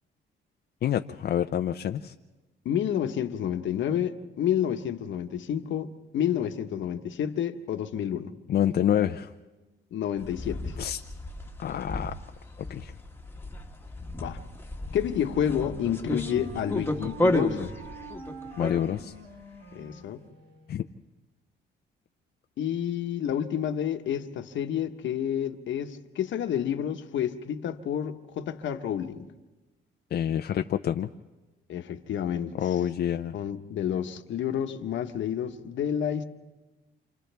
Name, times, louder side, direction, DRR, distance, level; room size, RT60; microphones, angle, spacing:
voice 1, 0.8-2.1 8.5-9.3 10.8-11.0 11.6-12.1 12.7-12.9 18.6-19.1 20.7-20.9 30.1-31.1 32.6-33.4, left 10 dB, 55° left, 6 dB, 0.6 m, -27 dB
voice 2, 2.6-8.3 9.9-10.7 14.2-14.4 14.9-17.7 19.7-20.2 22.6-29.3 31.7-32.6 33.3-36.2, left 9 dB, 70° left, 8 dB, 1.2 m, -29 dB
sound 1, 10.2-19.2, left 1 dB, 10° left, 1.4 m, -33 dB
Wind instrument woodwind instrument, 14.7-20.8, right 2 dB, 90° right, 6.0 m, -46 dB
28.5 x 27.5 x 3.4 m, 1.2 s
cardioid pair, 90°, 20 cm